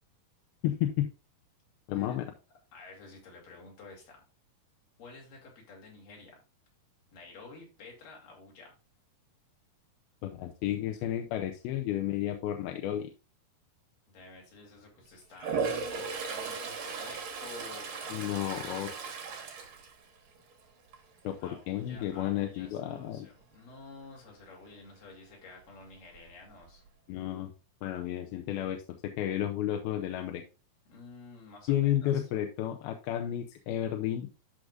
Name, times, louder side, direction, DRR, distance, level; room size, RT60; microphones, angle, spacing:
voice 1, 0.6-1.1 1.9-2.3 10.2-13.1 18.1-18.9 21.2-23.3 27.1-27.5 27.8-30.4 31.7-34.3, left 12 dB, 80° left, 4 dB, 2.4 m, -32 dB
voice 2, 2.7-4.2 5.0-6.4 7.1-8.8 14.1-18.9 21.4-26.8 30.9-32.3, left 3 dB, 60° left, -1 dB, 4.1 m, -51 dB
Toilet flush, 15.3-20.5 20.9-21.3 25.8-25.9 26.1-26.9, right 5 dB, 60° right, 1.4 m, -37 dB
12.5 x 5.0 x 2.5 m, 0.31 s
omnidirectional pair, 4.6 m